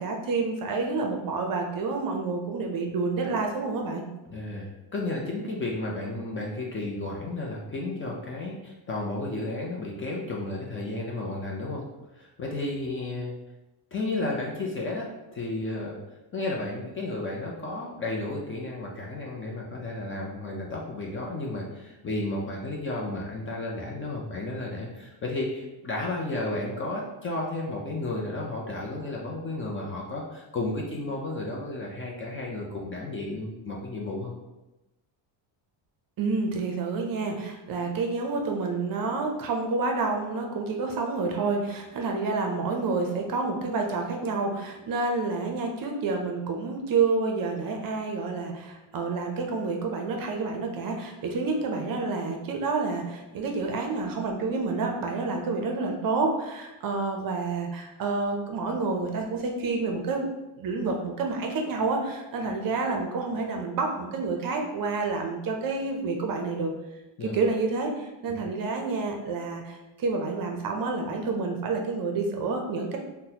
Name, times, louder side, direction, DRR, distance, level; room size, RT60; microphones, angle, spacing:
voice 1, 0.0-4.0 36.2-60.3 60.6-66.7 67.2-73.0, right 3 dB, 45° right, 2 dB, 0.5 m, -29 dB
voice 2, 4.3-11.8 12.1-13.3 13.9-15.9 16.3-34.3 67.2-67.4 68.3-68.4, left 2 dB, 25° left, -2 dB, 0.4 m, -33 dB
3.9 x 2.2 x 2.8 m, 1.0 s
cardioid pair, 120°, 49 cm